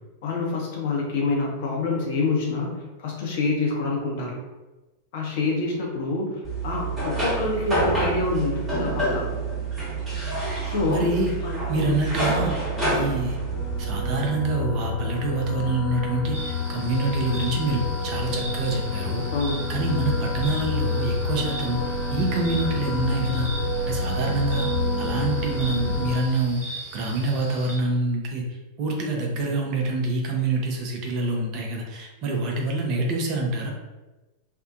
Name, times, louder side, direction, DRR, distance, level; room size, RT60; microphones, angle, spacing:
voice 1, 0.2-4.4 5.1-9.3 10.7-11.1 11.4-12.0 19.3-19.7, left 3 dB, 50° left, -2 dB, 0.6 m, -27 dB
sound 1, 6.4-14.2, right 2 dB, 15° right, 1.0 m, -27 dB
voice 2, 10.9-13.4 13.8-19.3 19.7-23.5 23.8-24.7 25.0-33.7, right 2 dB, 40° right, 0 dB, 0.5 m, -26 dB
sound 2, 13.5-26.2, left 3 dB, 25° left, 0.8 m, -28 dB
sound 3, 16.3-27.8, right 1 dB, 65° right, 0.9 m, -39 dB
2.5 x 2.1 x 2.5 m, 1.1 s
figure-of-eight pair, 90°, 0 cm